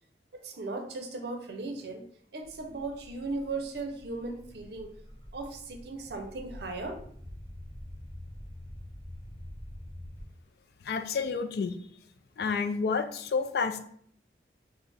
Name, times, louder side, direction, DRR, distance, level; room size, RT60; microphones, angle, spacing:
voice 1, 0.3-2.0 2.3-4.9 5.3-7.0, right 3 dB, 65° right, 4 dB, 0.6 m, -37 dB
sound 1, 2.4-10.3, left 1 dB, 35° left, 0.8 m, -46 dB
voice 2, 10.8-11.8 12.4-13.8, left 5 dB, 60° left, 8 dB, 0.3 m, -29 dB
4.1 x 2.1 x 3.3 m, 0.63 s
head